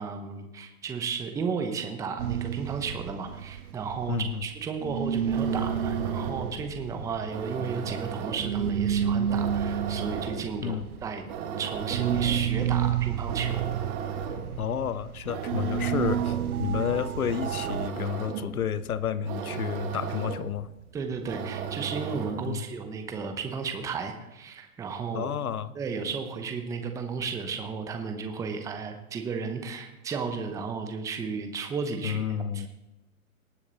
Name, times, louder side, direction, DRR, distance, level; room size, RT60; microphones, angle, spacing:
voice 1, 0.0-11.2 11.6-13.7 20.9-25.3 25.7-32.7, right 5 dB, 5° right, 6 dB, 0.8 m, -33 dB
sound 1, 2.2-4.6 4.8-17.9, right 9 dB, 90° right, 0.6 m, -30 dB
voice 2, 4.1-4.4 10.6-10.9 14.6-20.7 22.5-22.6 25.1-25.7 32.0-32.7, left 9 dB, 75° left, 16 dB, 0.9 m, -30 dB
sound 2, 5.2-22.6, right 7 dB, 35° right, 1.6 m, -36 dB
19.0 x 7.1 x 4.0 m, 0.97 s
hypercardioid pair, 130°, 43 cm